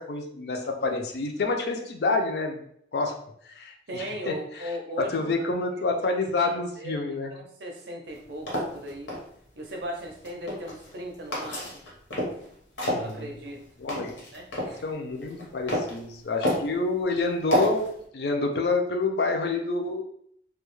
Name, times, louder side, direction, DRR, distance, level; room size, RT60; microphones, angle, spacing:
voice 1, 0.0-2.6 2.9-3.1 3.5-7.3 12.8-13.3 13.8-14.2 14.8-20.1, left 3 dB, 55° left, 4 dB, 0.4 m, -28 dB
voice 2, 3.9-5.5 6.4-6.9 7.3-9.1 9.6-11.8 12.4-12.5 12.9-13.6 14.3-14.8, equal, 60° right, 2 dB, 0.5 m, -38 dB
sound 1, 8.1-9.2 10.1-10.9 11.3-12.4 12.8-14.7 15.2-16.0 16.4-16.8 17.5-17.9, equal, 85° left, 0.9 m, -29 dB
2.3 x 2.0 x 3.0 m, 0.68 s
head